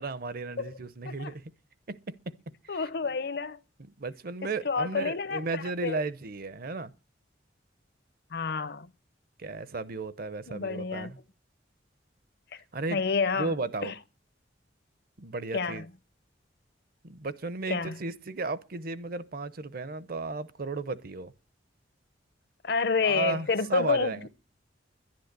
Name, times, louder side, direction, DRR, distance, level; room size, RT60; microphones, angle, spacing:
voice 1, 0.0-1.4 1.9-2.4 2.6-2.9 4.0-6.9 9.4-11.2 12.7-13.0 13.4-13.9 15.2-15.8 17.0-21.3 23.0-24.3, right 3 dB, 50° right, 0.7 m, -34 dB
voice 2, 2.7-3.6 4.6-6.0 8.3-8.9 10.5-11.1 12.5-12.6 12.9-13.5 13.8-13.9 15.5-15.9 17.7-18.0 22.6-24.3, left 5 dB, 60° left, 0.8 m, -29 dB
11.0 x 10.5 x 6.7 m
head